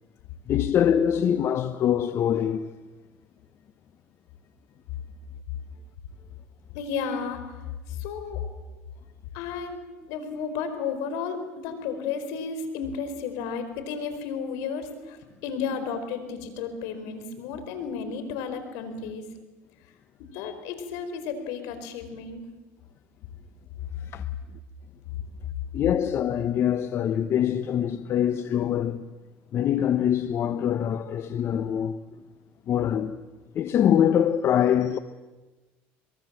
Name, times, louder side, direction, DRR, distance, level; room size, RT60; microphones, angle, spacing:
voice 1, 0.5-2.7 24.0-24.2 25.7-29.1 29.5-32.0 32.7-33.2 33.5-35.0, left 9 dB, 50° left, 1.0 m, -24 dB
voice 2, 6.7-8.4 9.3-9.8 10.1-19.3 20.3-22.4, left 6 dB, 75° left, 4.7 m, -33 dB
25.0 x 22.5 x 7.6 m
supercardioid pair, 95°, 6 cm